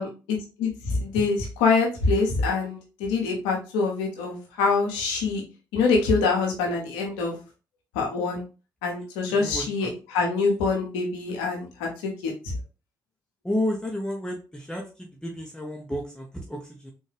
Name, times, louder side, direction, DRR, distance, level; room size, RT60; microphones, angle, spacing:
voice 1, 0.0-5.4 5.7-7.4 7.9-8.4 8.8-12.5, left 4 dB, 90° left, 0 dB, 1.1 m, -25 dB
voice 2, 9.2-9.9 13.4-16.9, left 1 dB, 10° left, 0 dB, 1.0 m, -31 dB
4.1 x 2.7 x 3.3 m, 0.33 s
hypercardioid pair, 50°, 8 cm